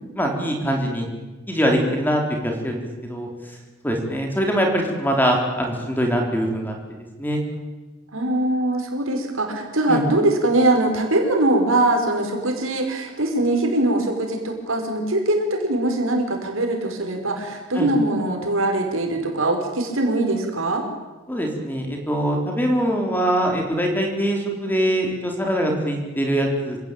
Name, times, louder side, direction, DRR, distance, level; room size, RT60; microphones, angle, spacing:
voice 1, 0.1-1.1 1.5-3.3 3.8-6.8 7.2-7.4 9.9-10.0 17.7-17.9 21.3-26.8, equal, 10° left, 2 dB, 4.1 m, -23 dB
voice 2, 8.1-20.8, right 1 dB, 80° right, 3 dB, 5.3 m, -22 dB
27.5 x 17.0 x 9.1 m, 1.2 s
head